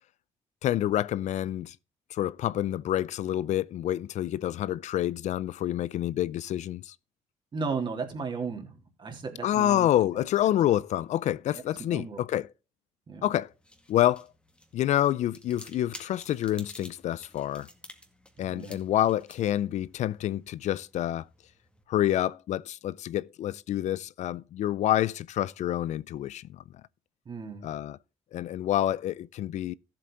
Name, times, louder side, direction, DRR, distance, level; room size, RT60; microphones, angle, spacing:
voice 1, 0.6-1.7 2.1-6.9 9.4-12.5 13.2-13.5 13.9-14.3 14.7-17.7 18.4-21.2 21.9-26.6 27.6-28.0 28.3-29.7, left 12 dB, 65° left, 0.5 m, -28 dB
voice 2, 7.5-8.7 9.0-9.9 11.7-12.2 13.1-13.3 18.4-18.8 27.2-27.7, right 4 dB, 40° right, 3.2 m, -35 dB
sound 1, 13.4-21.8, left 1 dB, 10° left, 2.1 m, -52 dB
14.0 x 7.8 x 3.9 m
cardioid pair, 115°, 13 cm